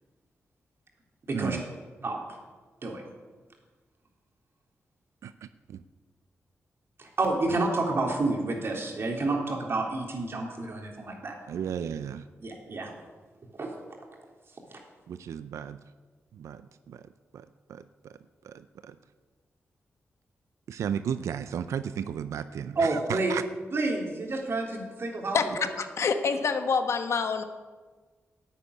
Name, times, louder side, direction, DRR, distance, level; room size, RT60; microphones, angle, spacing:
voice 1, 1.3-1.6 2.0-2.2 2.8-3.0 7.0-11.4 12.4-12.9 13.5-13.8 14.7-14.8 22.7-23.3 23.7-25.6, right 2 dB, 55° right, 1 dB, 3.4 m, -29 dB
voice 2, 5.2-5.8 11.5-12.2 15.1-15.8 16.3-17.0 17.3-18.2 18.4-18.9 20.7-23.4, right 8 dB, 90° right, 12 dB, 0.5 m, -35 dB
voice 3, 25.8-27.4, left 5 dB, 70° left, 8 dB, 1.3 m, -26 dB
11.5 x 8.4 x 9.8 m, 1.4 s
cardioid pair, 70°, 5 cm